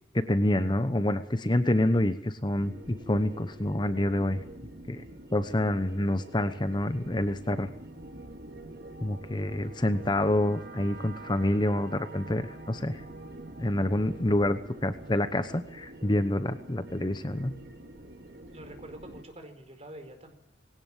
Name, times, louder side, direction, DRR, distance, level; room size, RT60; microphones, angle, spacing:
voice 1, 0.1-4.4 4.9-5.0 5.3-7.7 9.0-13.0 13.6-17.5, left 1 dB, 25° left, 10 dB, 1.0 m, -27 dB
sound 1, 2.6-19.2, right 1 dB, 60° right, 2.6 m, -46 dB
voice 2, 18.5-20.3, right 1 dB, 35° right, 7 dB, 4.6 m, -46 dB
20.5 x 18.0 x 7.3 m, 0.78 s
head